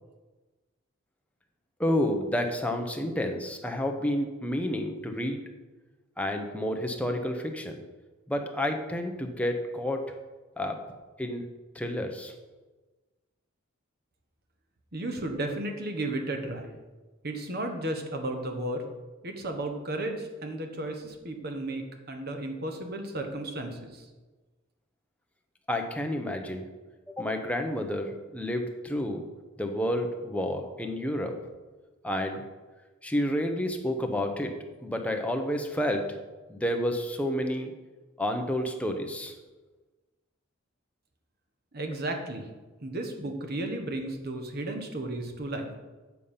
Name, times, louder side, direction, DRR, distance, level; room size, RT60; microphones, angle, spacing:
voice 1, 1.8-5.4 6.2-7.8 8.3-10.0 10.6-10.8 11.2-11.4 11.7-12.3 25.7-26.6 27.1-29.2 29.6-31.3 32.0-32.5 33.0-34.5 34.8-36.0 36.5-37.7 38.2-39.4, left 1 dB, 5° left, 4 dB, 0.8 m, -30 dB
voice 2, 14.9-16.7 17.2-18.8 19.2-23.9 41.7-42.5 42.8-45.7, right 1 dB, 45° right, 4 dB, 1.3 m, -34 dB
8.3 x 7.1 x 5.6 m, 1.2 s
head